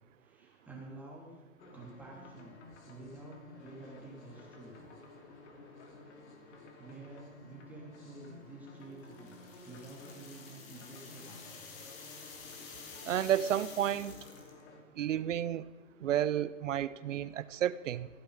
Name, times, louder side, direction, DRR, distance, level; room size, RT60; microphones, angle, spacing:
voice 1, 0.2-1.3 1.7-2.6 2.9-4.7 6.8-9.3 9.6-11.7, right 2 dB, 5° right, -3 dB, 3.0 m, -50 dB
sound 1, 1.6-14.8, left 3 dB, 55° left, 2.9 m, -53 dB
sound 2, 9.0-14.6, left 5 dB, 30° left, 2.4 m, -50 dB
voice 2, 13.0-14.1 15.0-15.7 16.0-18.1, right 11 dB, 65° right, 17 dB, 0.8 m, -31 dB
15.5 x 15.0 x 5.1 m, 1.2 s
hypercardioid pair, 155°, 40 cm